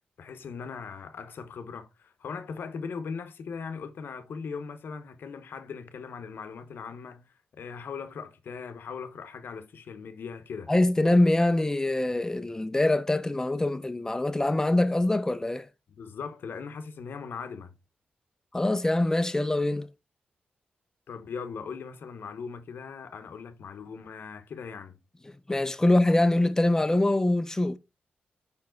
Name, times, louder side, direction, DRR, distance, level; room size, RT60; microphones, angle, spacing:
voice 1, 0.2-10.7 15.9-17.8 21.1-25.0, left 5 dB, 75° left, 0.9 m, -39 dB
voice 2, 10.7-15.7 18.5-19.9 25.5-27.8, left 1 dB, 15° left, 0.6 m, -24 dB
5.4 x 4.7 x 3.8 m
cardioid pair, 80°, 4 cm